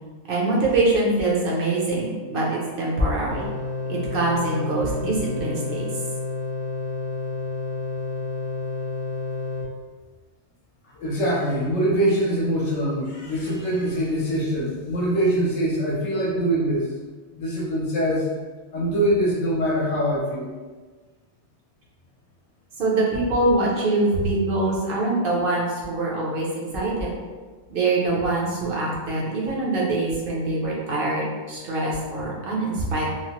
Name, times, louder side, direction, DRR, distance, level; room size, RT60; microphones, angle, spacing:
voice 1, 0.3-3.4 3.9-5.9 22.8-27.1 27.7-33.0, right 2 dB, 55° right, -4 dB, 0.8 m, -24 dB
sound 1, 3.3-9.6, left 4 dB, 70° right, 1.1 m, -30 dB
voice 2, 11.0-16.9 17.3-18.3 18.7-20.5, right 1 dB, 70° left, -5 dB, 0.9 m, -23 dB
3.0 x 2.1 x 2.8 m, 1.4 s
omnidirectional pair, 1.3 m